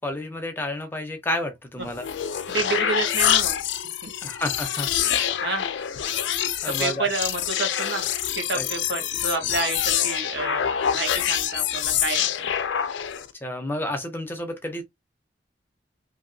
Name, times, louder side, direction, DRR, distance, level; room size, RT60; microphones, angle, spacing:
voice 1, 0.0-2.0 4.2-5.3 6.6-7.1 8.5-8.7 9.4-9.5 13.4-14.8, left 1 dB, 10° left, 0.5 m, -30 dB
sound 1, 1.8-13.3, left 10 dB, 90° left, 0.4 m, -26 dB
voice 2, 2.5-3.6 4.0-4.1 5.0-5.7 6.7-12.5, right 3 dB, 70° right, 1.2 m, -30 dB
2.8 x 2.7 x 2.6 m
head